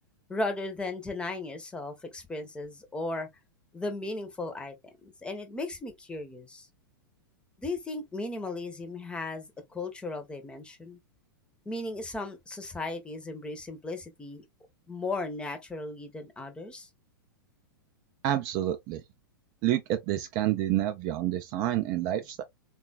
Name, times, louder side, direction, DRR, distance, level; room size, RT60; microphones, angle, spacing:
voice 1, 0.3-3.3 3.7-4.7 5.0-6.7 7.6-11.0 11.7-14.4 14.9-16.9, left 2 dB, 10° left, 0.7 m, -36 dB
voice 2, 18.2-19.0 19.6-22.4, right 13 dB, 30° right, 0.4 m, -28 dB
3.7 x 2.3 x 2.2 m
figure-of-eight pair, 100°, 12 cm